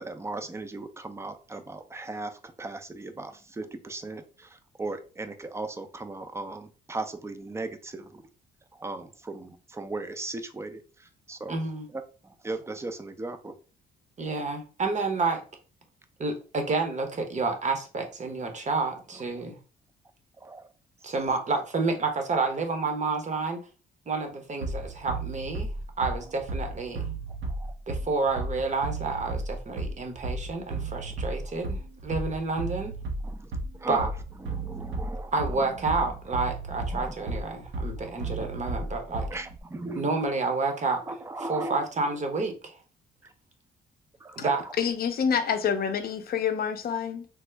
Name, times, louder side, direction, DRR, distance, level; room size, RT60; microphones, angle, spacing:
voice 1, 0.0-8.2 8.7-11.6 11.9-13.5 18.9-19.5 20.4-20.7 27.4-27.7 30.8-31.2 31.5-31.6 33.2-33.5 33.8-34.1 34.4-36.2 36.7-37.5 38.0-38.5 39.2-40.0 41.1-42.1 43.2-43.3 44.2-44.7, right 2 dB, 15° right, 0.4 m, -38 dB
voice 2, 11.5-11.9 14.2-15.4 16.2-19.6 21.0-23.6 24.1-25.7 26.0-27.1 27.9-32.9 33.9-34.1 35.3-39.2 39.9-41.0 41.5-42.8 44.4-44.6, right 3 dB, 35° right, 0.8 m, -29 dB
Bass drum, 24.6-39.6, right 2 dB, 75° right, 0.8 m, -34 dB
voice 3, 44.8-47.3, left 7 dB, 50° left, 0.5 m, -27 dB
3.5 x 2.0 x 3.2 m
cardioid pair, 90°, 20 cm